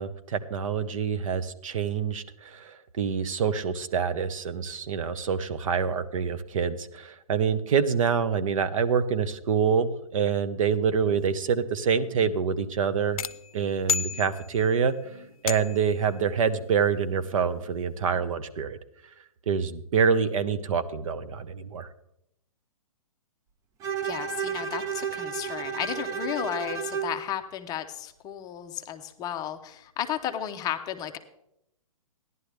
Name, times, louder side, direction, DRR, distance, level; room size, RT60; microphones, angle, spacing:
voice 1, 0.0-13.2 13.5-14.9 15.4-18.8 19.5-21.9, right 6 dB, 60° right, 10 dB, 1.0 m, -26 dB
sound 1, 11.8-18.7, right 2 dB, 85° right, 4.7 m, -54 dB
sound 2, 13.2-14.8 15.5-16.0, left 7 dB, 70° left, 0.6 m, -32 dB
Bowed string instrument, 23.8-27.2, right 7 dB, 15° right, 0.4 m, -32 dB
voice 2, 24.0-31.2, left 10 dB, 20° left, 7 dB, 0.7 m, -33 dB
14.5 x 11.0 x 3.4 m, 0.78 s
hypercardioid pair, 135°, 19 cm